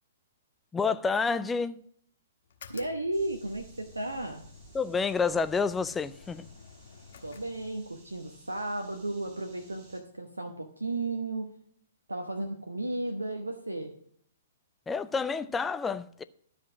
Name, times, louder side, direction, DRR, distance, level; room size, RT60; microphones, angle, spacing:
voice 1, 0.7-1.8 4.7-6.4 14.9-16.2, left 5 dB, 10° left, 0.5 m, -29 dB
sound 1, 2.4-8.1, left 6 dB, 60° left, 1.5 m, -52 dB
voice 2, 2.7-4.4 7.2-11.6 12.1-13.9, right 2 dB, 85° right, 1.0 m, -34 dB
sound 2, 3.1-10.0, right 5 dB, 25° right, 4.5 m, -58 dB
12.0 x 5.3 x 6.0 m
figure-of-eight pair, 115°, 0 cm